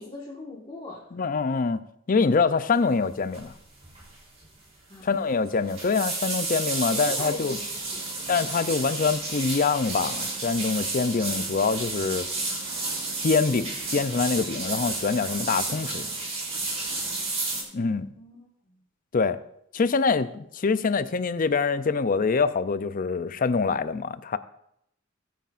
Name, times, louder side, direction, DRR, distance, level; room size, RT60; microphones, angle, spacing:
voice 1, 0.0-1.1 4.9-5.3 6.9-7.7 7.9-8.0 18.1-18.8, left 2 dB, 25° left, 1.6 m, -41 dB
voice 2, 1.1-1.8 2.1-3.5 5.0-7.6 8.3-12.3 13.2-16.1 17.7-18.1 19.1-19.4 19.7-24.4, left 4 dB, 40° left, 0.5 m, -25 dB
sound 1, 3.3-3.6 3.8-4.1 4.4-4.5 5.5-17.6, right 3 dB, 30° right, 3.4 m, -31 dB
18.5 x 9.3 x 2.5 m
head